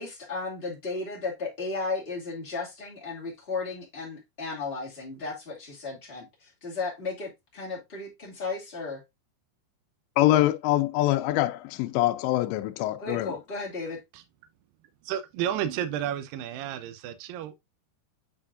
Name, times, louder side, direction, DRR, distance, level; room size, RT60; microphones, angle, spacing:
voice 1, 0.0-9.0 13.0-14.0, left 3 dB, 25° left, 1.4 m, -35 dB
voice 2, 10.2-13.3, left 15 dB, 85° left, 2.8 m, -24 dB
voice 3, 15.0-17.6, right 10 dB, 80° right, 2.0 m, -32 dB
9.1 x 4.5 x 2.4 m
omnidirectional pair, 5.0 m